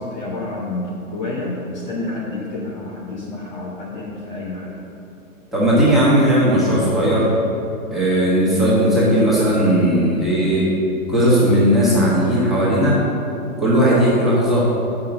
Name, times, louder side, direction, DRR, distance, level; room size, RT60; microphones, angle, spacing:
voice 1, 0.0-4.8, left 2 dB, 30° left, -4 dB, 0.8 m, -29 dB
voice 2, 5.5-7.3 7.9-10.7 11.1-13.0 13.6-14.7, equal, ahead, -10 dB, 1.4 m, -16 dB
5.9 x 5.7 x 6.6 m, 2.8 s
hypercardioid pair, 145°, 45 cm